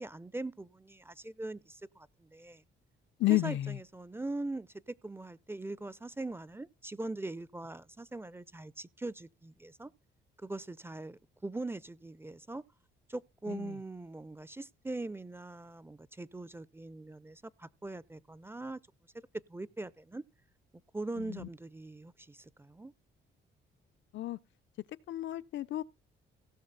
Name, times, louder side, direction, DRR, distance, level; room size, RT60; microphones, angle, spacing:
voice 1, 0.0-2.6 3.3-9.9 10.4-12.6 13.1-18.8 19.5-20.2 20.9-22.9, right 2 dB, 10° right, 0.5 m, -41 dB
voice 2, 3.2-3.8 13.5-13.8 21.2-21.5 24.1-24.4 25.1-25.8, left 16 dB, 70° left, 0.6 m, -31 dB
16.5 x 6.4 x 4.0 m
cardioid pair, 90°, 20 cm